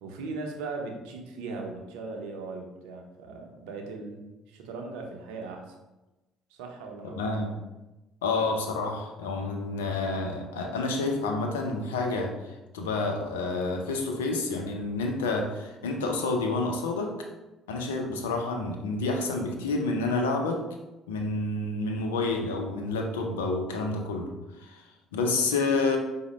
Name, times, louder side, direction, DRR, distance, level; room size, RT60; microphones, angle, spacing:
voice 1, 0.0-5.7 6.5-7.5, right 3 dB, 75° right, 2 dB, 0.6 m, -39 dB
voice 2, 7.2-7.5 8.2-17.3 17.7-20.6 21.1-24.3 24.5-26.0, left 3 dB, 85° left, 3 dB, 0.5 m, -29 dB
4.9 x 2.1 x 3.0 m, 1.0 s
hypercardioid pair, 55°, 0 cm